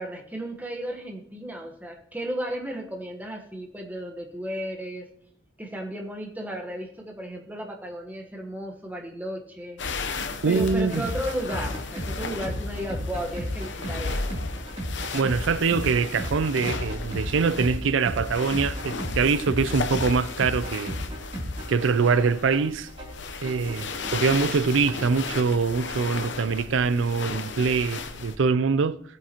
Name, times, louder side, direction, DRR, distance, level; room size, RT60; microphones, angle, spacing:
voice 1, 0.0-5.1 5.6-9.8 10.5-14.4, equal, 10° right, 1.3 m, -34 dB
sound 1, 9.8-28.4, left 4 dB, 65° left, 0.8 m, -35 dB
voice 2, 10.4-11.0 15.1-21.0 21.7-22.9 23.4-29.0, right 5 dB, 80° right, 0.5 m, -24 dB
sound 2, 10.6-25.6, equal, 30° right, 3.3 m, -35 dB
17.0 x 8.4 x 3.0 m
head